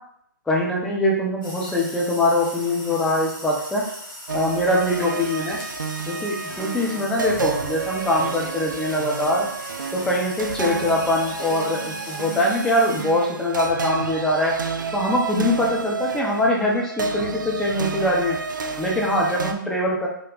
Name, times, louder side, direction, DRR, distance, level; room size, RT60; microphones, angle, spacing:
voice 1, 0.5-3.8 4.3-5.6 6.1-9.5 9.9-14.6 14.9-18.4 18.8-20.1, left 1 dB, 5° left, -3 dB, 0.6 m, -23 dB
sound 1, 1.4-13.0, left 1 dB, 75° left, 1.3 m, -39 dB
sound 2, 4.3-19.5, right 4 dB, 65° right, 0.4 m, -30 dB
3.6 x 2.1 x 3.8 m, 0.72 s
figure-of-eight pair, 125°, 11 cm